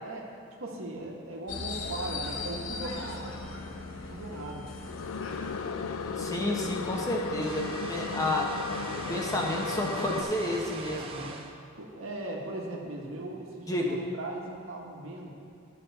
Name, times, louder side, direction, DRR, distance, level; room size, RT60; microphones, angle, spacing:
voice 1, 0.0-3.4 3.9-4.7 10.9-11.4 11.8-15.3, right 2 dB, 85° right, -1 dB, 1.5 m, -39 dB
sound 1, 1.5-11.4, left 3 dB, 70° left, 0.9 m, -41 dB
sound 2, 4.8-10.2, left 5 dB, 90° left, 0.4 m, -35 dB
voice 2, 6.2-8.5 8.9-11.1 13.7-14.0, left 1 dB, 15° left, -1 dB, 1.0 m, -30 dB
sound 3, 7.4-11.5, right 3 dB, 25° right, 0.6 m, -41 dB
13.5 x 5.7 x 4.1 m, 2.5 s
head